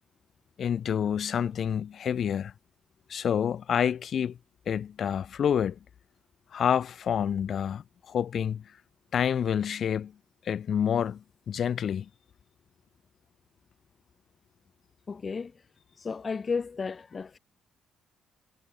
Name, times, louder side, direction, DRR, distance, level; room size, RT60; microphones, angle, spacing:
voice 1, 0.6-2.5 3.1-4.4 4.7-5.8 6.5-8.6 9.1-10.1 10.4-12.1, left 8 dB, 60° left, 1.1 m, -28 dB
voice 2, 15.1-15.5 16.0-17.4, left 5 dB, 35° left, 0.8 m, -33 dB
cardioid pair, 90°, 0 cm